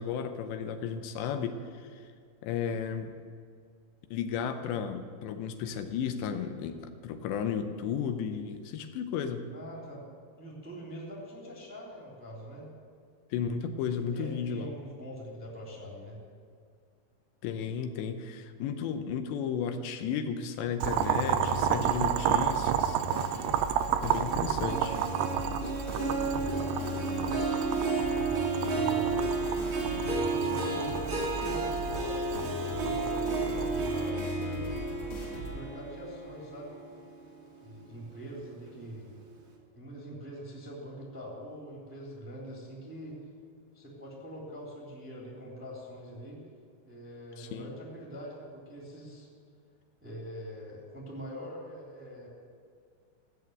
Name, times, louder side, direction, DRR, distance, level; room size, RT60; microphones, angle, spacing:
voice 1, 0.0-2.0 2.4-3.1 4.1-9.5 13.3-14.7 17.4-23.0 24.0-25.0 29.9-30.0 30.4-30.5 47.4-47.7, left 7 dB, 80° left, 7 dB, 3.0 m, -34 dB
voice 2, 9.5-10.0 10.4-12.7 14.1-16.2 26.0-27.4 28.7-29.3 30.3-34.8 35.4-36.7 37.6-39.1 39.7-43.2 43.7-46.4 46.8-49.3 50.0-52.3, equal, 5° right, -3 dB, 1.9 m, -44 dB
sound 1, 20.8-35.6, left 1 dB, 40° left, 2.4 m, -39 dB
Boiling, 20.8-34.1, right 10 dB, 80° right, 2.3 m, -32 dB
Harp, 24.6-37.4 37.8-38.2 38.7-38.8, right 3 dB, 45° right, 1.8 m, -32 dB
15.5 x 8.4 x 7.9 m, 2.1 s
omnidirectional pair, 5.1 m